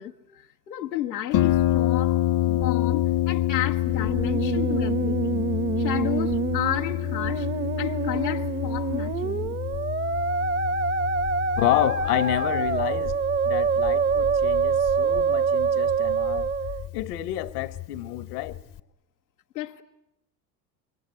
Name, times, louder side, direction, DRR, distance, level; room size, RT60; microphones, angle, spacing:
voice 1, 0.0-2.2 2.5-5.4 5.8-7.5 7.8-9.6 19.5-19.8, left 13 dB, 85° left, 1.1 m, -32 dB
Harp, 1.3-18.8, left 13 dB, 40° left, 1.0 m, -28 dB
Musical instrument, 3.9-16.9, right 5 dB, 20° right, 1.0 m, -26 dB
voice 2, 11.6-13.1 13.4-16.5 16.9-18.6, left 15 dB, 70° left, 1.4 m, -29 dB
26.5 x 23.0 x 9.8 m
hypercardioid pair, 75°, 49 cm